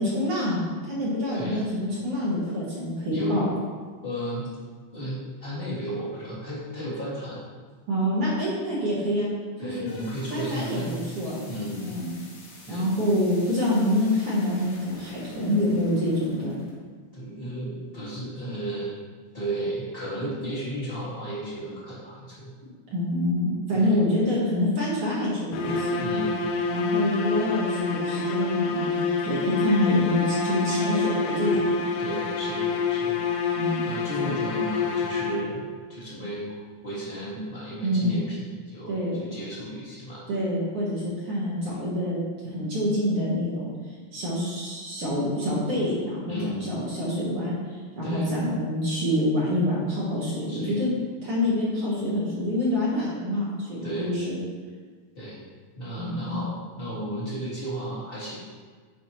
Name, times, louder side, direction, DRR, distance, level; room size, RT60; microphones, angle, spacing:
voice 1, 0.0-3.5 7.9-9.3 9.6-9.9 10.3-11.4 11.8-12.1 12.7-16.6 22.9-26.0 26.7-28.9 29.2-31.9 33.5-34.3 37.8-38.2 38.9-39.3 40.3-43.7 44.1-47.6 47.9-50.9 51.2-54.4 56.0-56.5, left 1 dB, 60° right, -6 dB, 1.5 m, -26 dB
voice 2, 4.0-4.5 4.9-7.4 9.6-11.0 11.4-12.0 12.6-12.9 17.1-18.9 19.3-22.5 23.7-23.9 25.9-26.5 32.0-33.2 33.8-35.6 35.9-36.6 36.8-40.2 46.3-46.7 48.0-48.3 50.5-50.8 53.8-54.1 55.1-55.4 55.7-58.3, right 1 dB, 30° left, -9 dB, 0.9 m, -34 dB
sound 1, 9.4-16.7, left 2 dB, 65° left, 1.2 m, -49 dB
sound 2, 25.5-35.8, left 4 dB, 80° left, 2.1 m, -27 dB
10.0 x 4.4 x 3.0 m, 1.5 s
omnidirectional pair, 4.3 m